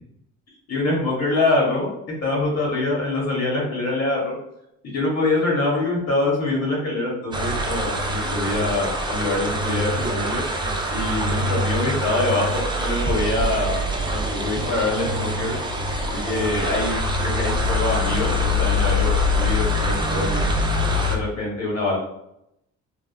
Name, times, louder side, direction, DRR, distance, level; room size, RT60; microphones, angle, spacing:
voice 1, 0.7-4.4 4.8-10.4 10.9-13.8 14.1-15.5 16.1-20.5 21.1-22.0, left 2 dB, 55° left, -3 dB, 1.3 m, -24 dB
sound 1, 7.3-21.2, left 1 dB, 15° right, 0.4 m, -24 dB
3.3 x 2.3 x 2.2 m, 0.80 s
cardioid pair, 90°, 30 cm